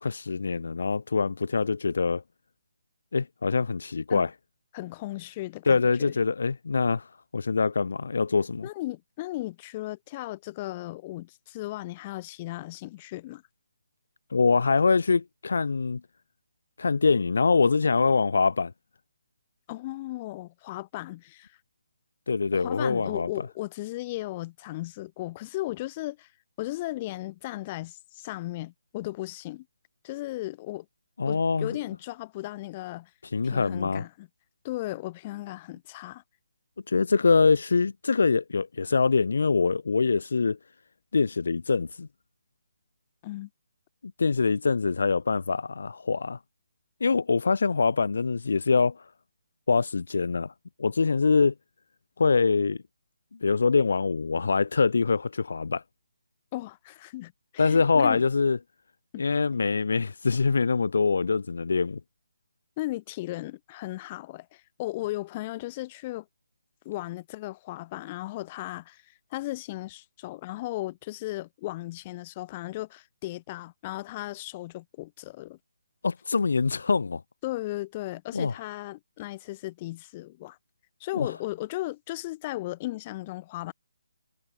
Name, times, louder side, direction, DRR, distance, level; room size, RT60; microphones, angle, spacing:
voice 1, 0.0-2.2 3.1-4.3 5.7-7.1 7.3-8.7 14.3-16.0 16.8-18.7 22.3-23.3 31.2-31.8 33.3-34.0 36.9-40.6 41.1-42.1 44.2-46.4 47.0-49.0 49.7-50.5 50.8-51.5 52.2-52.8 53.4-55.8 57.6-58.6 59.2-62.0 76.0-77.2 78.3-78.5 81.1-81.3, left 4 dB, 70° left, 2.5 m, -24 dB
voice 2, 4.7-6.1 8.6-13.4 19.7-21.6 22.5-26.3 26.6-29.6 30.0-30.8 31.3-33.1 33.4-34.3 34.6-36.2 43.2-43.5 56.5-58.2 59.1-59.3 62.8-66.3 66.8-75.6 77.4-80.6 81.0-83.7, left 17 dB, 25° left, 5.1 m, -36 dB
hypercardioid pair, 155°, 0 cm